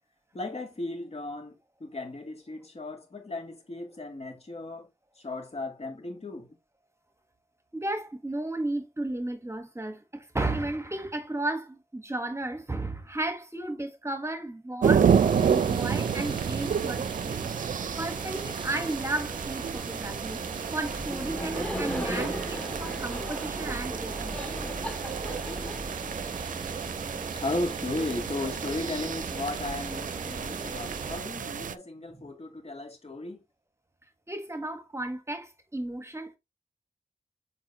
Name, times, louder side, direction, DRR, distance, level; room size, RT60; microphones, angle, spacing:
voice 1, 0.3-4.9 5.2-6.5 27.4-33.4, left 2 dB, 55° left, 2.5 m, -35 dB
voice 2, 7.7-17.5 18.0-20.4 20.7-24.4 32.1-32.3 34.3-36.4, right 2 dB, 20° right, 1.3 m, -34 dB
sound 1, 14.8-31.7, right 7 dB, 85° right, 0.4 m, -30 dB
sound 2, 15.1-31.2, right 3 dB, 40° right, 0.8 m, -39 dB
Laughter, 20.8-26.6, equal, 10° left, 2.3 m, -37 dB
7.6 x 4.8 x 2.9 m
cardioid pair, 60°, 13 cm